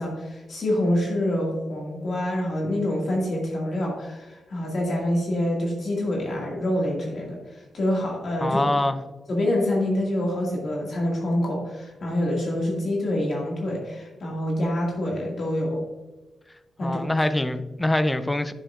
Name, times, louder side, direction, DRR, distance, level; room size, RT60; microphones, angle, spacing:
voice 1, 0.0-8.6 9.3-15.8 16.8-17.0, left 1 dB, 45° left, -2 dB, 2.0 m, -26 dB
voice 2, 8.4-9.0 16.8-18.5, left 1 dB, 10° left, 10 dB, 0.5 m, -24 dB
10.5 x 6.5 x 2.4 m, 1.1 s
wide cardioid pair, 165°, 0 cm